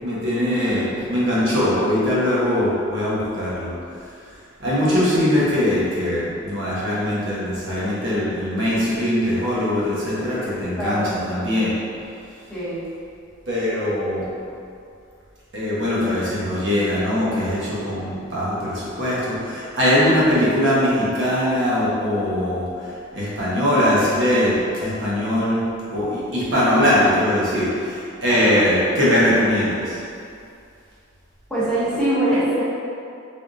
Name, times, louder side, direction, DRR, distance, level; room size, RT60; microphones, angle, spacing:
voice 1, 0.0-3.7 4.6-11.7 13.5-14.2 15.5-22.6 23.1-25.6 25.9-30.0, left 1 dB, 65° right, -8 dB, 1.0 m, -21 dB
voice 2, 10.7-11.1 12.5-12.9 28.3-28.7 31.5-32.6, right 1 dB, 5° left, -11 dB, 0.9 m, -24 dB
3.7 x 3.4 x 2.6 m, 2.5 s
head